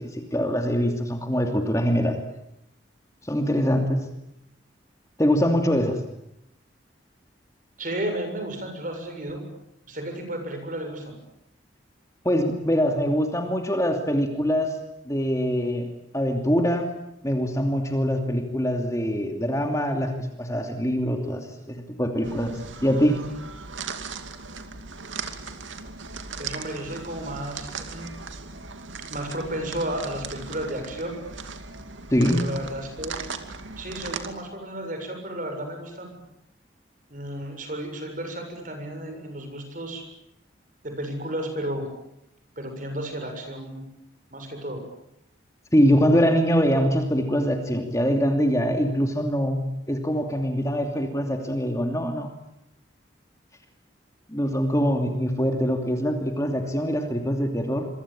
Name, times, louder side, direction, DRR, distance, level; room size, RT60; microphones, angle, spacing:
voice 1, 0.0-2.2 3.2-4.0 5.2-6.0 12.2-14.8 15.1-15.9 16.1-16.9 17.2-23.2 32.1-32.4 45.7-52.3 54.3-57.9, equal, 15° left, 4 dB, 2.8 m, -23 dB
voice 2, 7.8-9.5 9.9-11.2 26.4-28.2 29.1-31.2 32.3-33.2 33.8-36.2 37.1-40.1 40.8-41.9 42.6-43.9 44.3-44.9, right 1 dB, 45° right, 5 dB, 7.3 m, -33 dB
sound 1, 22.2-34.3, right 4 dB, 90° right, 2.6 m, -38 dB
26.5 x 24.5 x 8.9 m, 0.80 s
head